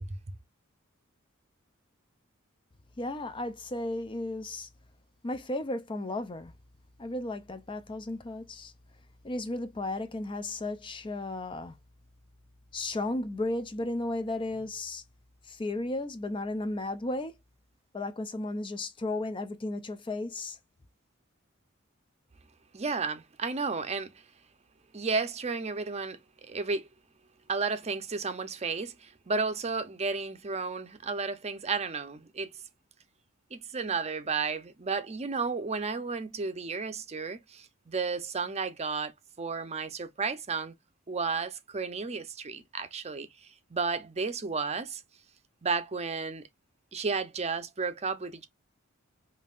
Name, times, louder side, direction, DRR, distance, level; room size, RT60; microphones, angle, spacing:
voice 1, 3.0-4.7 5.2-6.5 7.0-8.7 9.2-11.8 12.7-15.0 15.4-17.4 17.9-20.6, left 2 dB, 25° left, 0.5 m, -34 dB
voice 2, 22.7-24.1 24.9-26.9 27.5-32.5 33.5-39.1 39.4-40.7 41.1-43.3 43.7-45.0 45.6-46.4 46.9-48.5, right 4 dB, 30° right, 0.6 m, -32 dB
5.4 x 2.5 x 2.4 m
head